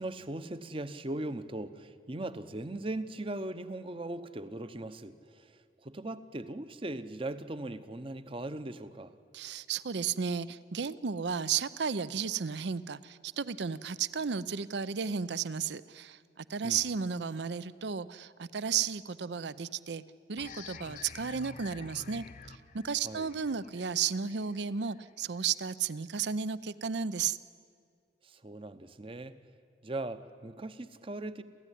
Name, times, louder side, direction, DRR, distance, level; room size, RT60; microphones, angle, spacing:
voice 1, 0.0-9.1 16.6-16.8 23.0-23.3 28.2-29.4 29.8-31.4, right 2 dB, 30° right, 12 dB, 0.8 m, -39 dB
voice 2, 9.3-20.0 20.3-22.3 22.7-27.4, right 6 dB, 70° right, 17 dB, 0.6 m, -33 dB
sound 1, 20.4-25.7, left 5 dB, 45° left, 0.9 m, -49 dB
28.0 x 14.5 x 10.0 m, 2.3 s
head